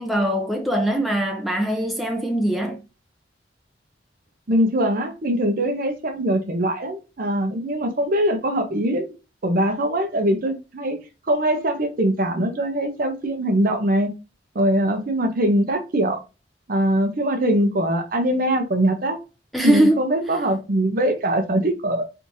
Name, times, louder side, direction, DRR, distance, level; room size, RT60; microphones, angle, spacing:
voice 1, 0.0-2.8 19.5-20.0, right 1 dB, ahead, 0.6 m, -21 dB
voice 2, 4.5-9.1 9.4-11.0 11.3-14.1 14.5-16.2 16.7-19.2 19.6-22.1, right 1 dB, 50° right, 0.7 m, -22 dB
3.4 x 3.1 x 2.6 m
head